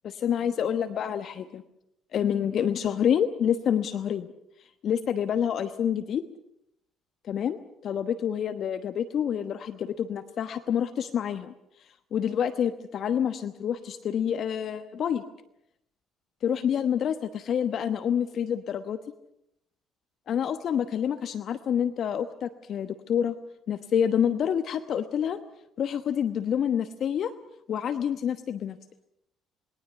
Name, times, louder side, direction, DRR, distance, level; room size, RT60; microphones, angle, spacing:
voice 1, 0.0-1.6 2.1-4.3 4.8-6.2 7.3-11.5 12.1-15.2 16.4-19.0 20.3-23.3 23.7-25.4 25.8-27.3 27.7-28.8, left 8 dB, 55° left, 10 dB, 1.1 m, -27 dB
27.0 x 22.0 x 5.7 m, 0.81 s
hypercardioid pair, 50°, 0 cm